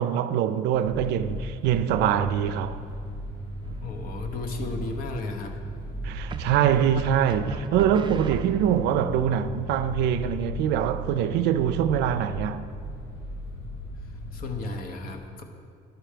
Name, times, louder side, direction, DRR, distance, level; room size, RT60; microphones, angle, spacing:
voice 1, 0.0-2.8 6.0-12.6, right 9 dB, 85° right, 0.4 m, -24 dB
sound 1, 0.7-14.6, equal, 80° left, 2.2 m, -37 dB
sound 2, 3.6-4.2 6.3-9.0, right 4 dB, 30° right, 0.4 m, -39 dB
voice 2, 3.7-5.6 14.3-15.4, left 2 dB, 55° left, 0.9 m, -34 dB
11.5 x 4.4 x 5.1 m
cardioid pair, 110°, 17 cm